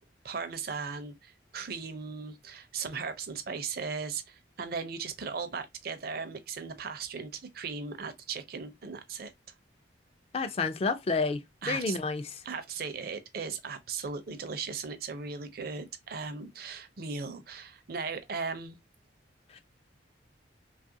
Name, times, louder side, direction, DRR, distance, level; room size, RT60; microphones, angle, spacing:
voice 1, 0.2-9.3 11.6-12.0 12.4-18.8, right 5 dB, 50° right, 0.5 m, -37 dB
voice 2, 10.3-11.4 11.7-12.4 19.5-19.6, left 4 dB, 30° left, 0.4 m, -30 dB
3.1 x 2.4 x 2.6 m
head